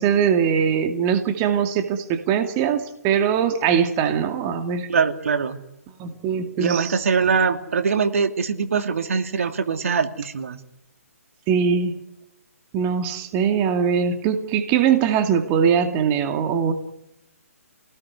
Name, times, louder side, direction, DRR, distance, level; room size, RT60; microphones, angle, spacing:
voice 1, 0.0-4.9 6.0-7.1 11.5-12.0 12.7-16.7, right 7 dB, 25° right, 6 dB, 2.5 m, -21 dB
voice 2, 4.9-5.6 6.6-10.6, right 5 dB, 65° right, 7 dB, 2.6 m, -22 dB
29.0 x 19.0 x 9.8 m, 0.86 s
hypercardioid pair, 145°, 8 cm